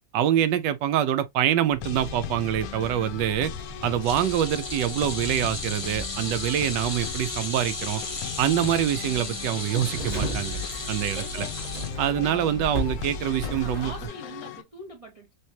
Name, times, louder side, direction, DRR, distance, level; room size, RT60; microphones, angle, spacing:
voice 1, 0.1-3.5 3.8-8.0 8.4-10.6 10.9-11.5 12.0-13.9, right 11 dB, 85° right, 1.2 m, -25 dB
sound 1, 1.7-14.1, equal, 25° right, 1.1 m, -37 dB
sound 2, 1.8-14.6, left 13 dB, 70° left, 0.9 m, -39 dB
sound 3, 4.0-12.5 12.8-13.1 14.3-14.4, left 3 dB, 20° left, 0.9 m, -35 dB
voice 2, 10.8-11.3 13.2-15.3, right 1 dB, 45° right, 0.4 m, -43 dB
3.5 x 3.2 x 2.7 m
omnidirectional pair, 1.9 m